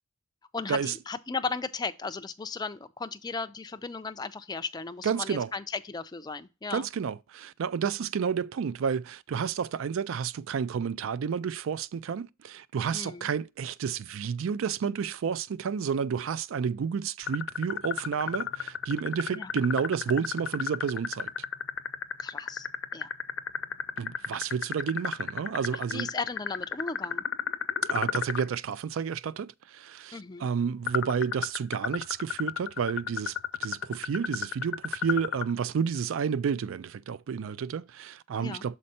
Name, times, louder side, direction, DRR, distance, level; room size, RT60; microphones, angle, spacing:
voice 1, 0.5-6.9 12.9-13.3 19.3-19.5 22.2-22.7 22.9-23.1 25.9-27.2 30.1-30.5 38.4-38.7, left 4 dB, 20° left, 0.4 m, -36 dB
voice 2, 5.0-5.5 6.7-21.3 24.0-26.1 27.9-38.8, right 6 dB, 70° right, 0.4 m, -31 dB
sound 1, 17.3-28.4 30.9-35.5, left 8 dB, 65° left, 0.6 m, -32 dB
6.6 x 4.2 x 4.1 m
head